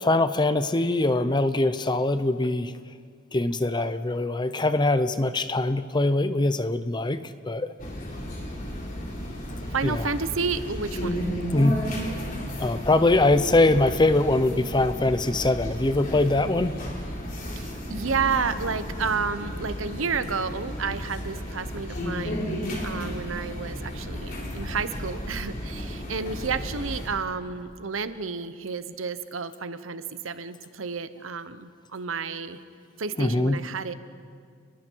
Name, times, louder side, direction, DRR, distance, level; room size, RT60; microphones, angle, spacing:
voice 1, 0.0-2.7 3.3-7.2 7.5-7.7 9.8-10.0 11.5-11.9 12.6-16.8 33.2-33.6, left 2 dB, 20° left, 12 dB, 0.7 m, -22 dB
sound 1, 7.8-27.1, equal, 45° left, 3.7 m, -33 dB
voice 2, 9.7-11.2 17.5-22.4 22.8-32.6 33.0-33.9, right 5 dB, 85° right, 12 dB, 0.9 m, -31 dB
29.0 x 21.0 x 4.7 m, 2.1 s
head